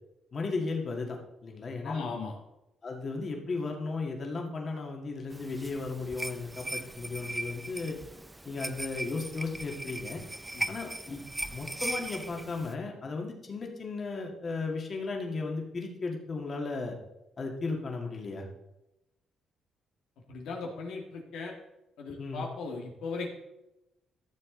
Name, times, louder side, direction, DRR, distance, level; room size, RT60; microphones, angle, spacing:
voice 1, 0.3-2.1 2.8-8.0 8.5-10.2 10.7-11.2 11.5-17.0 17.4-18.5 22.2-22.5, left 3 dB, 45° left, 1 dB, 1.9 m, -35 dB
voice 2, 1.8-2.3 10.5-10.6 20.3-21.5 22.0-23.4, left 4 dB, 85° left, 0 dB, 1.7 m, -38 dB
sound 1, 5.3-12.7, right 1 dB, 10° right, 0.5 m, -39 dB
13.0 x 7.1 x 3.8 m, 0.92 s
cardioid pair, 90°, 0 cm